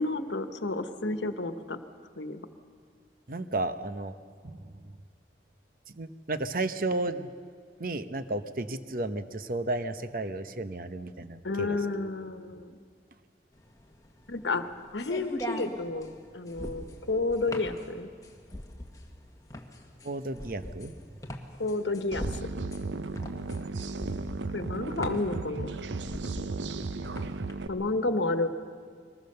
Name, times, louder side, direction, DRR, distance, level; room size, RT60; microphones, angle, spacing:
voice 1, 0.0-1.8 2.2-2.4 11.4-12.7 14.3-14.6 14.9-16.1 16.3-18.1 21.6-22.3 24.5-25.8 27.7-28.5, left 2 dB, 85° left, 9 dB, 1.2 m, -30 dB
voice 2, 3.3-4.1 4.4-4.9 5.9-7.3 7.8-11.8 20.0-20.9, right 2 dB, 50° right, 10 dB, 0.9 m, -33 dB
sound 1, 13.6-27.5, left 1 dB, 20° left, 1.4 m, -41 dB
sound 2, 22.1-27.7, right 3 dB, 85° right, 0.7 m, -35 dB
23.0 x 20.0 x 6.8 m, 2.1 s
head